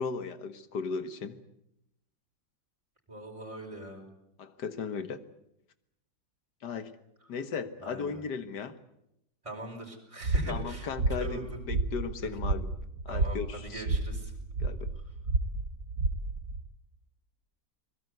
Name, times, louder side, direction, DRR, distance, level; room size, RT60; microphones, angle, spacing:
voice 1, 0.0-1.4 4.4-5.2 6.6-6.9 7.3-8.8 10.5-12.7 13.1-13.9 14.6-14.9, left 5 dB, 70° left, 12 dB, 2.0 m, -36 dB
voice 2, 3.1-4.0 7.8-8.2 9.4-11.5 12.2-12.3 13.1-14.3, right 1 dB, 15° right, 0 dB, 5.2 m, -42 dB
sound 1, 10.2-16.6, right 3 dB, 65° right, 2.2 m, -31 dB
23.5 x 21.0 x 8.0 m, 0.82 s
omnidirectional pair, 1.8 m